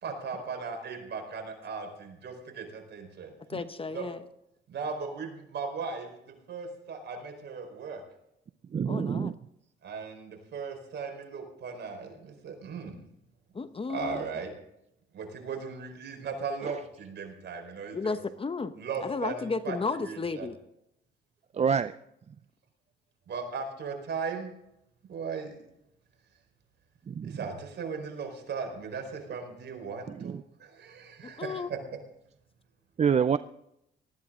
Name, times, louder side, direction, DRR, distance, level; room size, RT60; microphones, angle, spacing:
voice 1, 0.0-3.3 3.9-4.0 4.7-8.0 9.8-13.0 13.9-14.5 15.1-18.2 18.7-20.5 21.5-21.6 23.3-24.5 25.1-25.5 27.2-30.3 30.6-31.8, right 5 dB, 60° right, 3 dB, 4.5 m, -37 dB
voice 2, 3.4-4.2 8.9-9.3 13.5-14.2 17.9-18.7 19.0-20.5 31.2-31.7, left 4 dB, 25° left, 11 dB, 1.0 m, -33 dB
voice 3, 8.7-9.3 16.6-16.7 21.5-22.0 27.1-27.4 30.2-30.4 33.0-33.4, right 7 dB, 35° right, 13 dB, 0.5 m, -26 dB
19.0 x 14.0 x 3.7 m, 0.80 s
cardioid pair, 90°, 20 cm